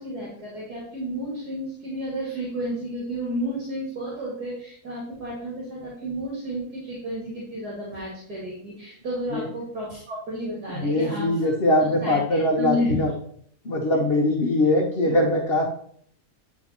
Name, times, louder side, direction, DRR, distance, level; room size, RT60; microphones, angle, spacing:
voice 1, 0.0-11.5 12.0-13.1 14.1-14.2 15.0-15.1, equal, 85° right, -6 dB, 2.8 m, -31 dB
voice 2, 10.7-13.1 13.6-15.7, left 1 dB, 45° left, -1 dB, 1.1 m, -22 dB
9.5 x 3.7 x 4.3 m, 0.63 s
omnidirectional pair, 1.6 m